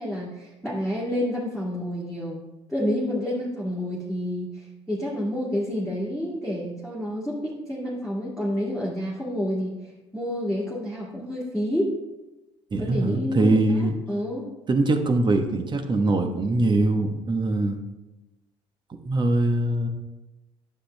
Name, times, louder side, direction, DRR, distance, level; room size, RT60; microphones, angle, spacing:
voice 1, 0.0-2.4 2.7-11.9 12.8-14.5, equal, ahead, -7 dB, 2.1 m, -29 dB
voice 2, 12.7-14.0 14.7-17.8 19.0-19.9, right 2 dB, 30° right, 5 dB, 1.1 m, -22 dB
9.0 x 6.6 x 3.3 m, 1.0 s
supercardioid pair, 80°, 14 cm